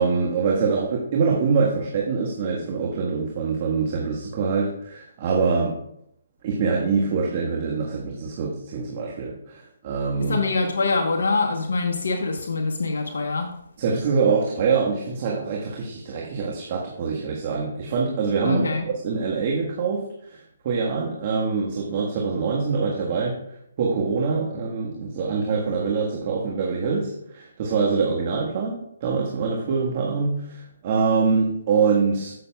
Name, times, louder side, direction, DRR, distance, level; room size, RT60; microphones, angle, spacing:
voice 1, 0.0-5.7 6.4-10.4 13.8-20.4 20.6-23.4 23.8-32.3, right 5 dB, 40° right, -2 dB, 1.5 m, -24 dB
voice 2, 10.2-13.5 18.4-18.8, left 3 dB, 75° left, 2 dB, 1.0 m, -24 dB
14.5 x 6.6 x 2.3 m, 0.75 s
hypercardioid pair, 150°, 0 cm